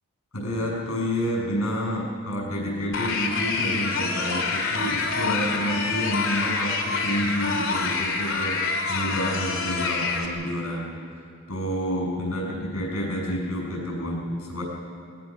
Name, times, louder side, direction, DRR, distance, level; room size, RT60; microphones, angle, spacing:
voice 1, 0.3-8.6 8.9-11.2 11.5-14.6, equal, 85° left, -1 dB, 7.4 m, -29 dB
sound 1, 2.9-10.3, left 4 dB, 65° left, 2.7 m, -27 dB
22.0 x 21.0 x 6.3 m, 2.4 s
head